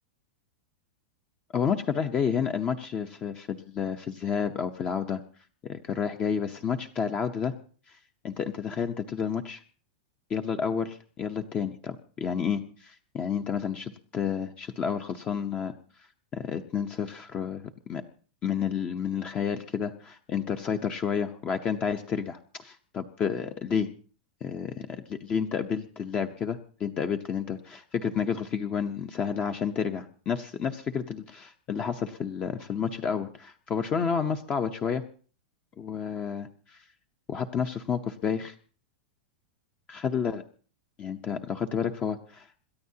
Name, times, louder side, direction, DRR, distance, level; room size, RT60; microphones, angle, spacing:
voice 1, 1.5-5.2 5.7-7.5 7.9-8.0 8.2-9.6 10.3-15.7 16.3-17.6 17.9-18.0 18.4-23.9 24.4-35.0 35.8-36.8 37.3-38.5 39.9-40.4 41.0-42.5, left 7 dB, 20° left, 7 dB, 0.8 m, -30 dB
27.5 x 13.5 x 2.8 m, 0.41 s
supercardioid pair, 165°, 5 cm